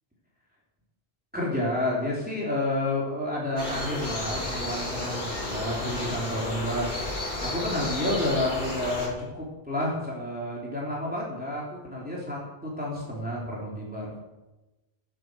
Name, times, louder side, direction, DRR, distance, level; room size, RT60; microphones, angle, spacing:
voice 1, 1.3-7.0 7.4-14.1, left 1 dB, 10° right, -5 dB, 3.4 m, -30 dB
sound 1, 3.6-9.1, left 1 dB, 45° left, 3.4 m, -32 dB
15.5 x 7.9 x 6.8 m, 1.0 s
omnidirectional pair, 1.1 m